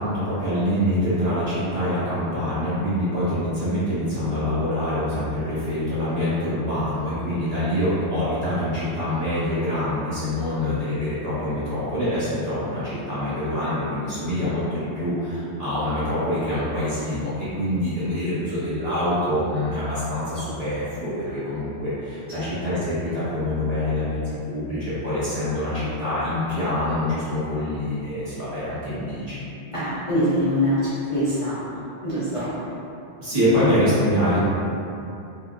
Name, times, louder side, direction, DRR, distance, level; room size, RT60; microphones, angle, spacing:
voice 1, 0.0-29.4 32.3-32.5 33.2-34.4, left 1 dB, 40° right, -13 dB, 1.0 m, -25 dB
voice 2, 29.7-32.5, equal, 40° left, -13 dB, 0.5 m, -24 dB
2.8 x 2.3 x 2.4 m, 2.7 s
omnidirectional pair, 1.1 m